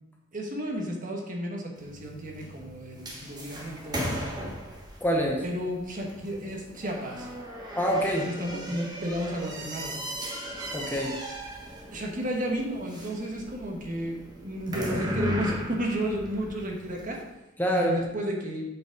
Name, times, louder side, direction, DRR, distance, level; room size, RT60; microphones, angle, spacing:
voice 1, 0.3-4.5 5.4-7.3 8.3-10.0 11.9-17.2 17.7-18.6, equal, 40° right, 1 dB, 1.4 m, -32 dB
sound 1, 1.8-17.2, equal, 20° right, 1.3 m, -37 dB
voice 2, 5.0-5.4 7.8-8.6 10.7-11.2 17.6-18.0, equal, 10° left, 0 dB, 1.0 m, -26 dB
8.1 x 5.1 x 5.2 m, 0.95 s
head